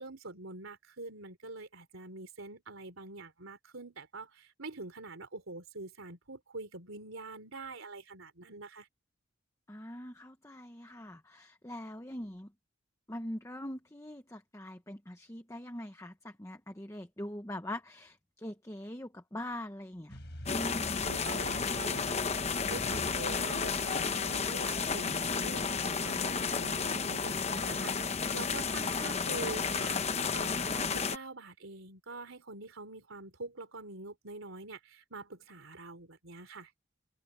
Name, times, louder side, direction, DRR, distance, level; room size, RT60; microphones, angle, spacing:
voice 1, 0.0-8.9 21.0-36.7, right 3 dB, 85° right, 3.6 m, -45 dB
voice 2, 9.7-12.5 13.1-20.2 20.5-21.0, left 1 dB, 15° left, 1.0 m, -42 dB
sound 1, 20.1-30.5, equal, 55° left, 5.5 m, -50 dB
sound 2, 20.5-31.2, left 5 dB, 30° left, 0.9 m, -32 dB
head